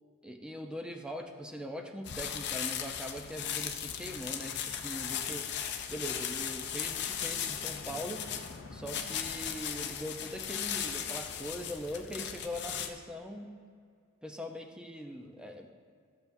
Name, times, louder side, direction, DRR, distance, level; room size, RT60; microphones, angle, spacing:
voice 1, 0.2-5.5 5.9-8.3 8.7-13.6 14.2-15.7, equal, 5° right, 3 dB, 0.6 m, -41 dB
sound 1, 2.1-12.9, left 8 dB, 55° left, 0.6 m, -37 dB
14.0 x 7.0 x 2.7 m, 2.2 s
head